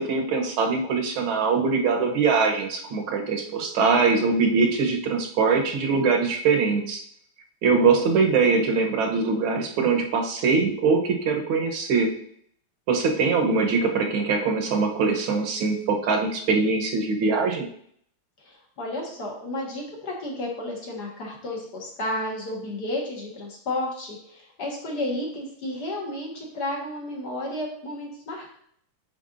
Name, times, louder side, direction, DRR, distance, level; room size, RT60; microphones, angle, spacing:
voice 1, 0.0-7.0 7.6-12.1 12.9-17.7, right 4 dB, 70° right, 3 dB, 1.7 m, -22 dB
voice 2, 7.7-8.1 18.4-28.6, left 1 dB, 50° left, -2 dB, 2.0 m, -32 dB
9.5 x 4.5 x 2.6 m, 0.65 s
omnidirectional pair, 2.4 m